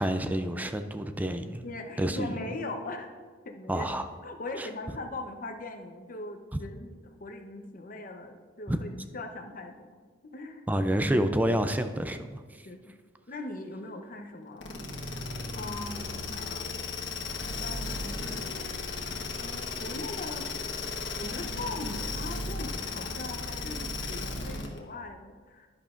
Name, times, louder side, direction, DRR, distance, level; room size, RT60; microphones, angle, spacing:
voice 1, 0.0-1.7 2.0-2.4 3.7-4.1 4.6-4.7 8.7-8.8 10.7-12.4, right 1 dB, 10° right, 8 dB, 0.4 m, -28 dB
voice 2, 1.6-3.1 3.4-3.9 4.2-9.9 10.2-10.7 12.6-12.9 13.3-15.3 15.5-16.7 17.6-18.9 19.4-20.6 21.2-25.7, left 2 dB, 50° left, 5 dB, 0.8 m, -40 dB
sound 1, 14.6-24.8, left 3 dB, 85° left, 1.2 m, -35 dB
10.5 x 10.5 x 2.5 m, 1.5 s
head